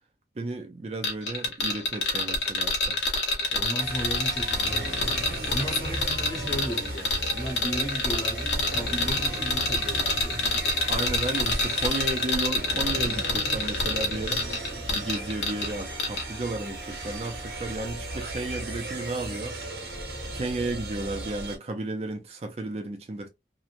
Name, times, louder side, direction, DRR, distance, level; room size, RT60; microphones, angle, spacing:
voice 1, 0.4-3.0 10.9-14.4 14.9-19.6 20.3-23.3, right 2 dB, 35° right, 0.4 m, -33 dB
sound 1, 1.0-15.7 16.0-16.2, left 3 dB, 90° left, 1.0 m, -27 dB
voice 2, 3.5-10.4, equal, 20° left, 0.8 m, -35 dB
sound 2, 3.8-21.6, right 1 dB, 65° right, 1.1 m, -36 dB
3.0 x 2.1 x 2.4 m
head